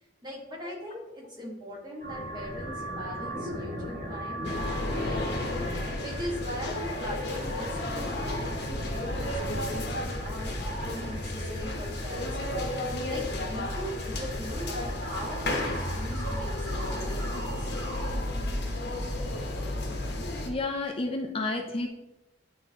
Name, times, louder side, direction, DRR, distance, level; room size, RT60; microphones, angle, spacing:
voice 1, 0.2-17.7, equal, 25° right, -4 dB, 1.7 m, -40 dB
sound 1, 2.0-18.1, equal, 60° right, 2.2 m, -39 dB
sound 2, 4.4-20.5, left 1 dB, 60° left, 1.0 m, -32 dB
voice 2, 20.5-21.9, left 2 dB, 30° left, 3 dB, 0.5 m, -31 dB
9.4 x 3.7 x 2.9 m, 1.0 s
head